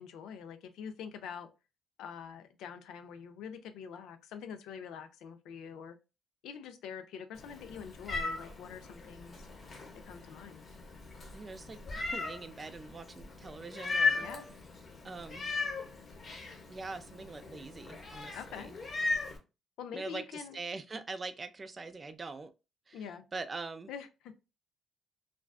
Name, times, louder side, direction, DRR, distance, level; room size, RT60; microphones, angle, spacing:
voice 1, 0.0-1.5 2.0-6.0 6.4-9.5 10.0-10.6 14.1-14.5 18.3-18.7 19.8-20.6 22.9-23.3 23.9-24.1, left 7 dB, 85° left, 0.4 m, -45 dB
Meow, 7.3-19.4, left 4 dB, 45° left, 0.8 m, -37 dB
voice 2, 11.3-14.3 15.0-15.5 16.7-18.7 19.9-22.5 22.9-23.9, right 3 dB, 30° right, 0.3 m, -43 dB
2.4 x 2.2 x 2.3 m
cardioid pair, 90°, 0 cm